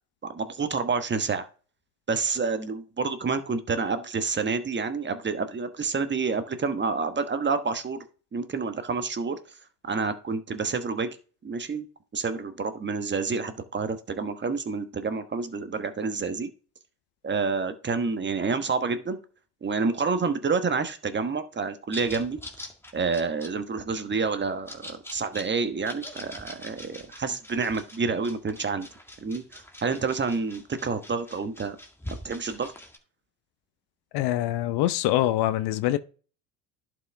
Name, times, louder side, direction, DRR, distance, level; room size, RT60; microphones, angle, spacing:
voice 1, 0.2-1.5 2.1-8.0 8.3-9.4 9.8-11.2 11.4-11.9 12.1-16.5 17.2-19.2 19.6-22.4 22.9-28.9 29.2-31.8 32.2-32.7, right 4 dB, 25° right, 1.2 m, -28 dB
sound 1, 21.9-33.0, left 1 dB, 5° left, 1.9 m, -44 dB
voice 2, 34.1-36.0, left 14 dB, 55° left, 0.8 m, -24 dB
11.0 x 5.2 x 3.4 m
hypercardioid pair, 75°, 47 cm